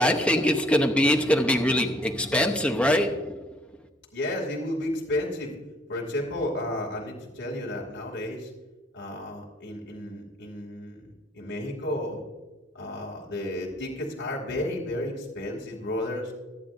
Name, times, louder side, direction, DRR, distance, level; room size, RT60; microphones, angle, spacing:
voice 1, 0.0-3.4, left 1 dB, 5° left, 3 dB, 0.8 m, -23 dB
voice 2, 4.1-5.6 5.9-8.5 8.9-11.1 11.3-12.2 12.7-16.3, left 1 dB, 60° left, -2 dB, 2.7 m, -32 dB
25.5 x 8.7 x 2.6 m, 1.2 s
head